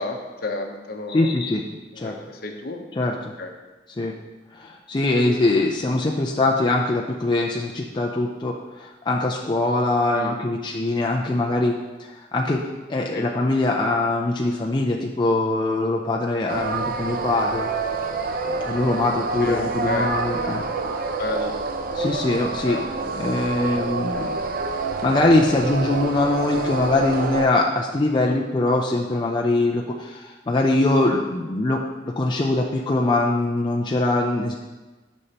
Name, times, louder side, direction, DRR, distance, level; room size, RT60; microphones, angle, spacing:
voice 1, 0.0-1.3 1.9-2.8 3.4-3.5 10.1-10.4 13.1-13.3 16.6-16.7 19.4-20.4 21.2-21.6 22.6-22.9, left 2 dB, 55° left, 4 dB, 0.8 m, -31 dB
voice 2, 1.1-1.6 2.0-2.1 3.0-3.3 4.0-4.1 4.5-11.7 12.1-12.6 12.9-17.7 18.6-20.6 21.9-24.3 25.0-34.5, left 2 dB, 25° left, 0 dB, 0.4 m, -22 dB
sound 1, 16.5-27.5, right 3 dB, 50° right, 0.5 m, -27 dB
9.8 x 5.3 x 2.9 m, 1.2 s
head